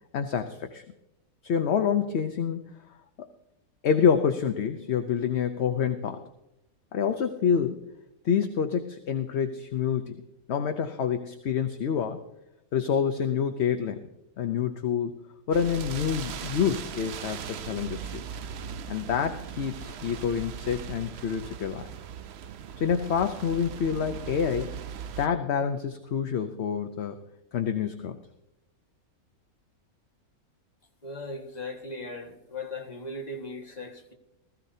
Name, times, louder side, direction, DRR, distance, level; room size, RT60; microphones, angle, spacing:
voice 1, 0.1-0.8 1.4-2.6 3.2-3.3 3.8-6.2 6.9-7.8 8.2-10.2 10.5-12.2 12.7-14.0 14.4-15.1 15.5-18.2 18.9-21.9 22.8-24.8 25.2-27.2 27.5-28.2, left 7 dB, 55° left, 7 dB, 0.9 m, -27 dB
sound 1, 15.5-25.3, right 8 dB, 60° right, 0.7 m, -39 dB
voice 2, 31.0-34.1, left 2 dB, 30° left, 0 dB, 1.7 m, -38 dB
19.5 x 14.5 x 2.7 m, 0.91 s
omnidirectional pair, 1.6 m